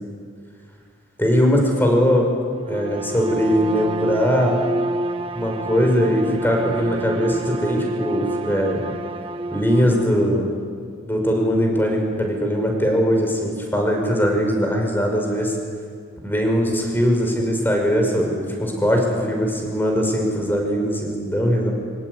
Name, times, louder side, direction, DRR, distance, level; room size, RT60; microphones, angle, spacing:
voice 1, 1.2-2.3 2.7-4.6 5.3-8.8 9.5-10.5 11.1-15.5 16.2-21.7, equal, 10° left, 2 dB, 5.7 m, -20 dB
Bowed string instrument, 2.6-10.2, right 2 dB, 30° right, 0.9 m, -28 dB
25.5 x 24.0 x 9.8 m, 2.1 s
head